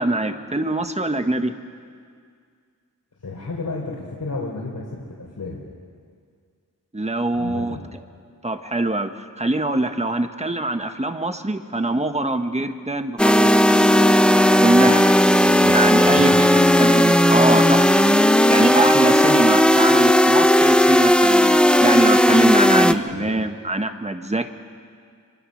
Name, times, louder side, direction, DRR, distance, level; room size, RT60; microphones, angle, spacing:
voice 1, 0.0-1.5 6.9-7.8 8.4-14.1 14.6-15.0 15.6-17.9 18.5-24.5, right 2 dB, 20° right, 7 dB, 1.4 m, -23 dB
voice 2, 3.2-5.7 7.3-7.8 15.4-15.7 16.0-16.7 23.1-23.4, left 3 dB, 65° left, -4 dB, 3.7 m, -32 dB
sound 1, 13.2-22.9, equal, 5° left, 0.7 m, -15 dB
26.0 x 25.5 x 6.5 m, 2.1 s
wide cardioid pair, 95°, 34 cm